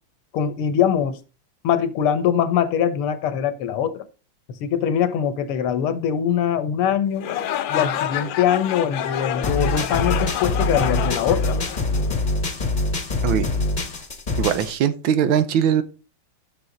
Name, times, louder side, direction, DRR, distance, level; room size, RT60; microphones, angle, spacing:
voice 1, 0.3-1.2 1.6-4.1 4.5-7.3 7.7-11.6, left 9 dB, 85° left, 1.9 m, -22 dB
sound 1, 7.2-12.4, left 10 dB, 70° left, 1.4 m, -28 dB
sound 2, 9.4-14.7, left 2 dB, 25° left, 1.1 m, -24 dB
voice 2, 14.4-15.8, right 9 dB, 70° right, 1.5 m, -20 dB
11.0 x 6.4 x 3.9 m
omnidirectional pair, 2.4 m